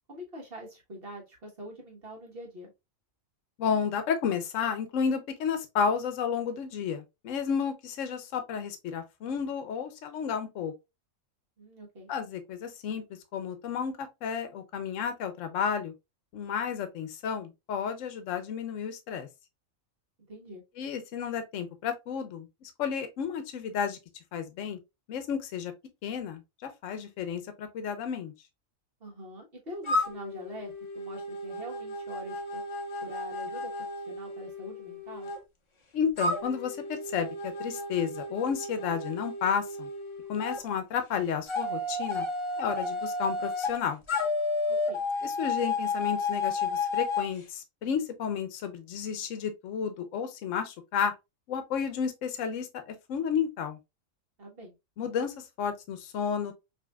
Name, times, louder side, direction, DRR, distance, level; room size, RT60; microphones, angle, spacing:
voice 1, 0.1-2.7 11.6-12.1 20.3-20.6 29.0-32.6 33.0-33.7 34.1-35.3 44.7-45.0 54.4-54.7, right 1 dB, 45° right, 1.4 m, -44 dB
voice 2, 3.6-10.7 12.1-13.0 13.3-15.9 16.3-19.3 20.8-24.0 24.3-24.8 25.1-25.7 26.0-28.3 35.9-39.9 40.3-42.3 42.6-44.0 45.2-51.1 51.5-53.8 55.0-56.5, left 7 dB, 70° left, 1.0 m, -32 dB
sound 1, 29.8-35.4 36.2-40.6 41.5-43.7 44.1-47.3, left 3 dB, 35° left, 0.5 m, -32 dB
5.0 x 2.7 x 2.2 m
omnidirectional pair, 1.4 m